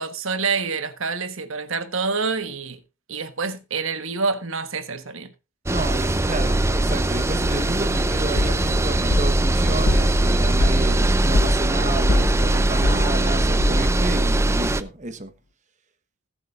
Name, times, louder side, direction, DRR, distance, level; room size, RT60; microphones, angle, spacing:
voice 1, 0.0-2.8 3.1-5.3, right 4 dB, 65° right, 1.3 m, -27 dB
sound 1, 5.7-14.8, right 1 dB, 10° right, 0.5 m, -21 dB
voice 2, 5.7-15.3, right 2 dB, 35° right, 1.2 m, -31 dB
sound 2, 8.4-14.2, left 2 dB, 80° left, 0.9 m, -26 dB
20.0 x 7.8 x 2.5 m
head